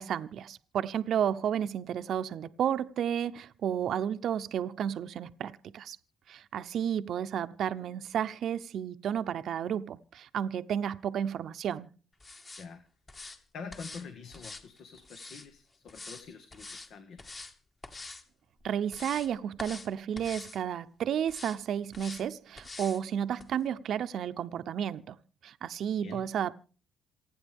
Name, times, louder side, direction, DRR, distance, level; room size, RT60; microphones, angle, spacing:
voice 1, 0.0-6.0 6.3-11.9 18.6-25.2 25.4-26.5, right 9 dB, 70° right, 0.7 m, -32 dB
sound 1, 12.2-12.7 13.1-13.4 13.7-14.0 14.3-15.5 15.9-16.2 16.5-16.9 17.2-17.5 17.8-18.2 18.6-19.3 19.6-19.9 20.2-20.6 21.3-21.6 21.9-22.2 22.6-23.0 23.4-23.5, left 3 dB, 35° left, 2.4 m, -45 dB
voice 2, 13.5-17.2 26.0-26.2, left 5 dB, 70° left, 1.7 m, -46 dB
27.5 x 9.4 x 3.5 m
cardioid pair, 90°, 0 cm